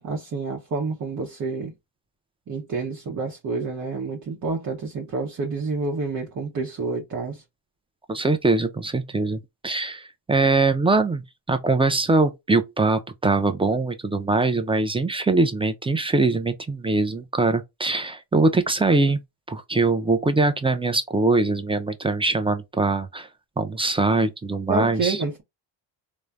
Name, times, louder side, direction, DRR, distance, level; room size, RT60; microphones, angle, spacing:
voice 1, 0.0-1.7 2.5-7.4 24.7-25.4, right 3 dB, 40° right, 0.8 m, -28 dB
voice 2, 8.1-19.2 19.5-23.3 23.6-25.2, right 3 dB, 15° right, 0.3 m, -22 dB
3.2 x 2.1 x 2.3 m
cardioid pair, 80°, 48 cm